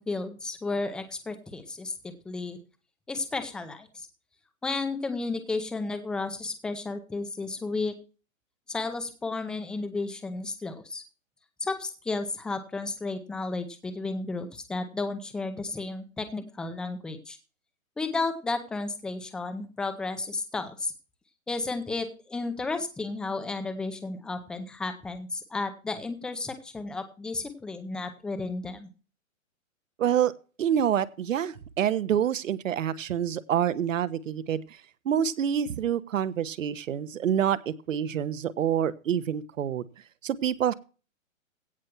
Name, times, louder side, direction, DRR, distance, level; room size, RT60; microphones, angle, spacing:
voice 1, 0.0-2.6 3.1-4.1 4.6-7.9 8.7-11.0 11.6-17.4 18.0-20.9 21.5-28.9, left 3 dB, ahead, 9 dB, 0.5 m, -33 dB
voice 2, 30.0-30.3 30.6-34.6 35.0-39.8 40.2-40.7, right 9 dB, 65° right, 15 dB, 1.2 m, -27 dB
16.5 x 5.6 x 4.6 m, 0.33 s
hypercardioid pair, 145°, 41 cm